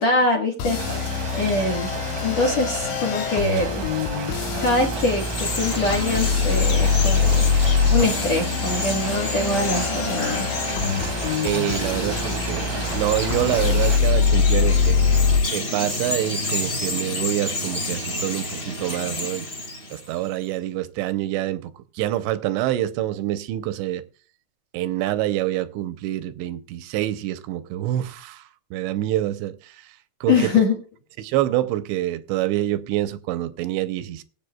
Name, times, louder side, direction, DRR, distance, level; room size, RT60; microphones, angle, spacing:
voice 1, 0.0-1.9 2.2-3.8 4.6-7.4 7.9-10.5 30.3-30.7, left 3 dB, 60° left, 1.9 m, -23 dB
sound 1, 0.6-15.4, left 6 dB, 90° left, 3.5 m, -23 dB
sound 2, 0.7-14.0, right 7 dB, 70° right, 2.1 m, -33 dB
Chirp tweet, 4.7-20.3, left 2 dB, 25° left, 2.9 m, -30 dB
voice 2, 11.4-12.7 12.9-15.0 15.5-19.5 19.9-24.0 24.7-28.4 28.7-29.9 30.2-30.5 31.2-34.2, right 14 dB, 85° right, 2.8 m, -26 dB
22.5 x 8.1 x 2.3 m
omnidirectional pair, 5.2 m